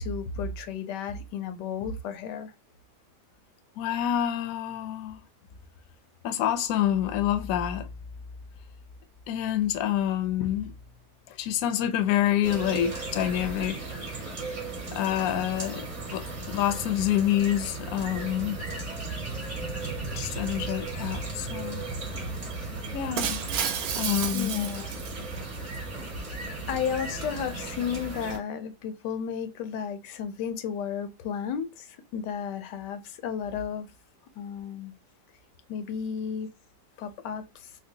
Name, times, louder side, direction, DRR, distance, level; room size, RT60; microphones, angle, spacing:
voice 1, 0.0-2.5 24.3-24.9 26.7-33.9 34.4-34.9 35.7-36.5 37.0-37.4, left 7 dB, 85° left, 1.3 m, -33 dB
voice 2, 3.8-5.2 6.2-7.9 9.3-10.7 11.3-13.8 14.9-18.6 20.1-21.8 22.9-23.4 23.8-24.7, left 11 dB, 70° left, 0.9 m, -27 dB
sound 1, 12.4-28.4, right 2 dB, 45° right, 2.1 m, -36 dB
Shatter, 23.2-25.6, right 8 dB, 70° right, 1.0 m, -31 dB
4.4 x 2.2 x 2.7 m
omnidirectional pair, 1.8 m